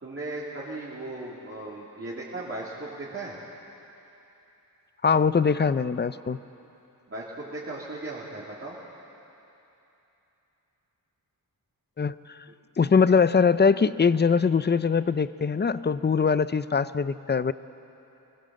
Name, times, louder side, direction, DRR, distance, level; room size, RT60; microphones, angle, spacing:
voice 1, 0.0-3.4 7.1-8.7, right 2 dB, 35° right, -7 dB, 3.1 m, -37 dB
voice 2, 5.0-6.4 12.0-12.4 12.8-17.5, left 5 dB, 30° left, 15 dB, 0.5 m, -22 dB
25.5 x 19.5 x 7.7 m, 3.0 s
wide cardioid pair, 150°, 37 cm